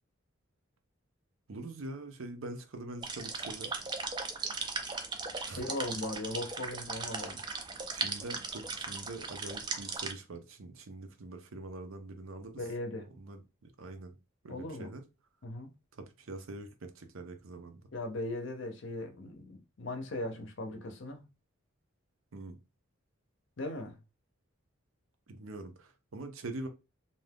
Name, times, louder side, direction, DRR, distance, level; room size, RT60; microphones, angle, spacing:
voice 1, 1.5-3.7 5.4-5.6 7.9-12.6 13.2-14.2 14.4-15.0 16.0-17.8 22.3-22.6 25.3-26.7, right 2 dB, 70° right, 0.6 m, -44 dB
sound 1, 3.0-10.1, right 4 dB, 20° right, 0.3 m, -38 dB
voice 2, 5.4-7.4 12.5-13.1 14.5-14.9 15.4-15.7 17.9-21.3 23.6-24.0, left 1 dB, 60° left, 0.6 m, -38 dB
2.5 x 2.3 x 3.3 m
head